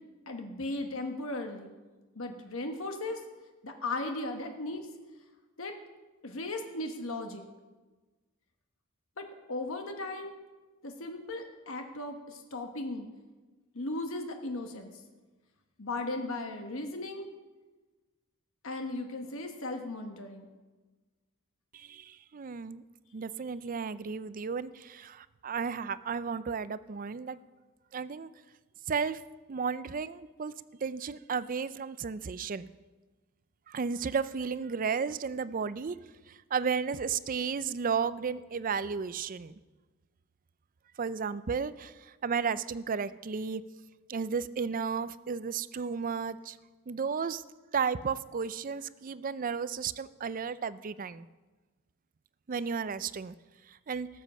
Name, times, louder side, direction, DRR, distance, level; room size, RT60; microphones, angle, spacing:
voice 1, 0.3-1.7 2.1-3.2 3.6-4.9 5.6-5.8 6.2-7.4 9.2-10.3 10.8-13.1 13.7-14.9 15.8-17.3 18.6-20.5, left 2 dB, 65° left, 4 dB, 1.3 m, -37 dB
voice 2, 21.7-22.8 23.1-27.4 27.9-28.3 28.9-29.2 29.5-30.5 30.8-32.7 33.7-36.0 36.3-39.5 41.0-41.9 42.2-43.6 44.1-46.6 46.9-47.4 47.7-51.3 52.5-53.3 53.9-54.1, right 6 dB, 40° right, 16 dB, 0.4 m, -33 dB
18.5 x 7.3 x 6.2 m, 1.2 s
head